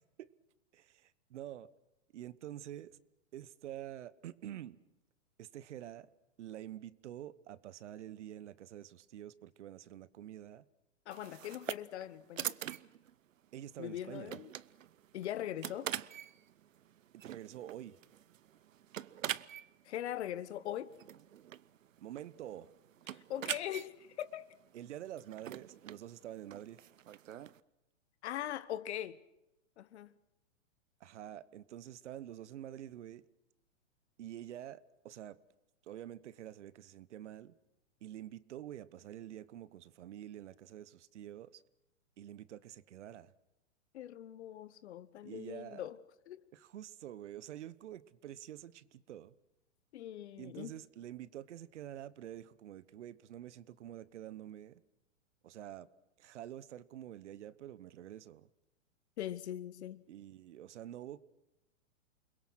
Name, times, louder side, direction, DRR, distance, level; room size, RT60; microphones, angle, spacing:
voice 1, 0.7-1.7 2.1-3.0 3.3-4.8 5.4-6.1 6.4-10.7 13.5-14.4 17.1-18.0 22.0-22.7 24.7-26.8 31.0-33.2 34.2-35.4 35.8-37.6 38.0-41.6 42.2-43.3 45.2-45.9 46.5-49.3 50.4-54.8 55.4-55.9 56.2-58.5 60.1-61.2, right 12 dB, 60° right, 1.1 m, -47 dB
voice 2, 11.1-12.6 13.8-14.5 15.1-15.9 19.9-20.9 23.1-24.5 28.2-29.2 29.8-30.1 43.9-46.0 46.3-46.4 49.9-50.7 59.2-60.0, left 12 dB, 55° left, 1.2 m, -41 dB
sound 1, 11.1-27.6, right 11 dB, 80° right, 0.8 m, -45 dB
29.0 x 21.5 x 6.2 m
hypercardioid pair, 125°, 39 cm